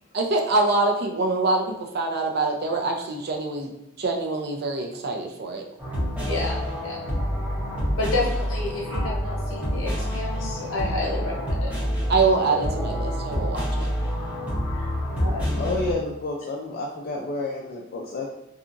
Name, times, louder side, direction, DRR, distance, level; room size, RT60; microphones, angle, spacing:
voice 1, 0.1-3.7 4.0-5.6 12.1-13.9, right 3 dB, 50° right, 2 dB, 0.5 m, -24 dB
sound 1, 5.8-15.9, equal, 5° right, 0.9 m, -27 dB
voice 2, 6.3-7.0 8.0-11.7 14.7-14.8 15.2-15.6, left 2 dB, 85° left, -2 dB, 0.8 m, -30 dB
voice 3, 15.6-18.3, left 2 dB, 45° left, -3 dB, 0.4 m, -30 dB
2.8 x 2.4 x 2.5 m, 0.94 s
head